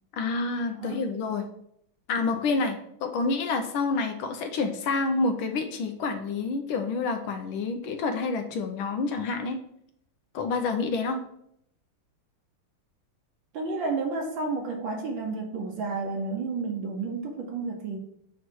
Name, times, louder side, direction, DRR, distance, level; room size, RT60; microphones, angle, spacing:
voice 1, 0.1-1.4 2.1-9.6 10.3-11.2, left 4 dB, 80° left, 7 dB, 1.5 m, -28 dB
voice 2, 13.5-18.0, right 3 dB, 70° right, 2 dB, 1.6 m, -31 dB
9.2 x 3.1 x 4.6 m, 0.73 s
omnidirectional pair, 2.3 m